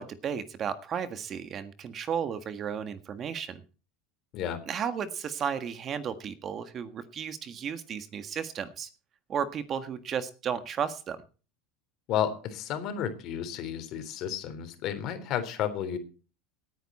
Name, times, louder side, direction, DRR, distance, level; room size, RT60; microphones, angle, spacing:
voice 1, 0.0-3.6 4.7-8.9 9.3-11.2, right 7 dB, 35° right, 11 dB, 1.6 m, -34 dB
voice 2, 12.1-16.0, left 9 dB, 50° left, 9 dB, 3.4 m, -32 dB
18.5 x 9.7 x 4.3 m, 0.36 s
supercardioid pair, 120°, 0 cm